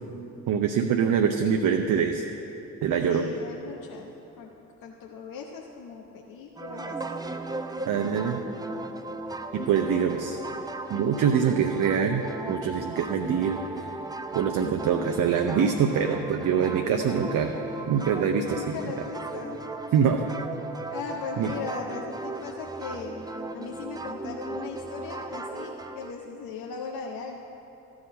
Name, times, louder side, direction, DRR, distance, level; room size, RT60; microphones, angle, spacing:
voice 1, 0.5-2.3 2.8-3.3 7.8-8.4 9.5-10.4 10.9-13.9 14.3-17.5 17.9-19.1 19.9-20.2 21.4-21.5, right 7 dB, 50° right, 4 dB, 0.7 m, -24 dB
voice 2, 2.9-4.5 4.8-7.2 9.8-10.3 18.5-19.6 20.9-23.2 23.5-27.4, left 5 dB, 55° left, 0 dB, 0.9 m, -38 dB
sound 1, 6.6-26.1, right 2 dB, 10° right, 0.6 m, -37 dB
14.0 x 4.8 x 7.2 m, 3.0 s
hypercardioid pair, 40°, 41 cm